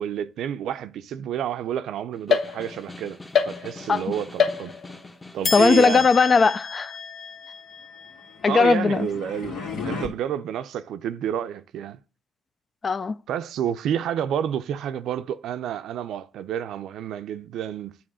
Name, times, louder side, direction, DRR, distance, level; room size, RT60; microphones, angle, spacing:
voice 1, 0.0-3.2 3.4-4.7 5.3-6.1 8.5-9.6 9.8-12.0 13.3-17.9, right 9 dB, 80° right, 0.5 m, -29 dB
Snare drum, 2.1-6.0, left 2 dB, 15° left, 1.0 m, -43 dB
sound 1, 2.3-3.0 3.3-4.0 4.4-5.1 5.4-8.9, left 6 dB, 65° left, 1.0 m, -28 dB
voice 2, 5.5-6.9 8.4-9.1 12.8-13.2, left 4 dB, 40° left, 0.4 m, -18 dB
sound 2, 8.1-10.1, left 5 dB, 85° left, 2.3 m, -34 dB
8.7 x 3.5 x 6.2 m
cardioid pair, 90°, 0 cm